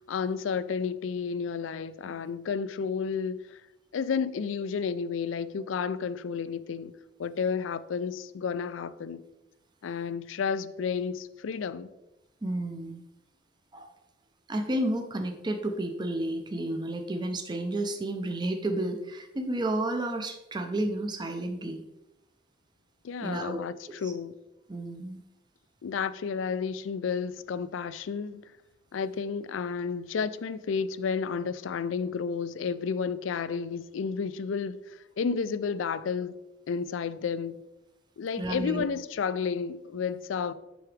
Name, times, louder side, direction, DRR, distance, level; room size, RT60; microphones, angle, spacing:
voice 1, 0.0-3.6 3.9-6.9 7.2-9.2 9.8-11.9 23.0-23.7 24.0-24.3 25.8-28.5 28.9-34.8 35.2-36.3 36.7-37.6 38.2-40.5, left 6 dB, 90° left, 0.4 m, -31 dB
voice 2, 12.4-13.0 13.7-13.9 14.5-21.8 23.2-23.6 24.0-24.1 24.7-25.2 38.4-38.8, right 1 dB, 25° right, 0.5 m, -31 dB
7.8 x 5.9 x 3.3 m
head